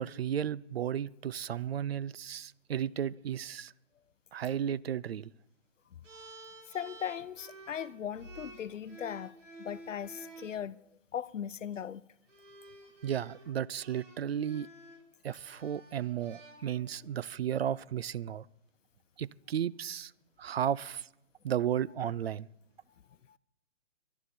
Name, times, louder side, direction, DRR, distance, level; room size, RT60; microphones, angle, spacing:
voice 1, 0.0-3.7 4.3-5.3 13.0-14.7 15.2-18.4 19.2-20.1 20.4-21.1 21.4-22.5, right 9 dB, 55° right, 0.4 m, -34 dB
sound 1, 6.0-10.6 11.6-11.8 12.3-17.1, right 2 dB, 85° right, 2.9 m, -52 dB
voice 2, 6.7-10.8 11.1-12.0, left 9 dB, 85° left, 0.7 m, -38 dB
22.0 x 11.5 x 4.3 m
hypercardioid pair, 155°, 37 cm